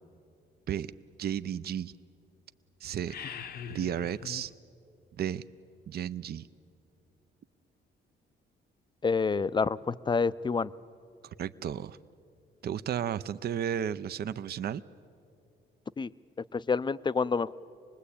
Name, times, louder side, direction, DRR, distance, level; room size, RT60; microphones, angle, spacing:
voice 1, 1.2-1.9 2.8-3.2 3.7-4.5 5.2-5.4 5.9-6.5 11.2-12.0 12.6-14.8, right 9 dB, 55° right, 14 dB, 0.6 m, -33 dB
sound 1, 3.0-4.5, left 7 dB, 50° left, 0.8 m, -42 dB
voice 2, 9.0-10.7 16.0-16.1 16.5-17.5, left 5 dB, 25° left, 16 dB, 0.5 m, -28 dB
26.0 x 20.5 x 8.5 m, 2.5 s
cardioid pair, 90°, 20 cm